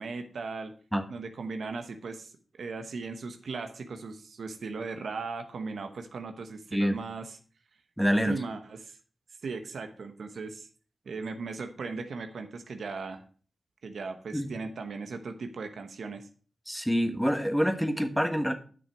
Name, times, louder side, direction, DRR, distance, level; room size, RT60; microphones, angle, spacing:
voice 1, 0.0-0.7 1.1-2.3 2.6-7.4 8.3-9.0 9.4-10.7 11.0-13.2 13.8-16.2, right 4 dB, 75° right, 1.0 m, -37 dB
voice 2, 8.0-8.4 14.3-14.5 16.7-18.5, equal, ahead, 1.3 m, -26 dB
9.8 x 6.0 x 4.6 m
cardioid pair, 55°, 0 cm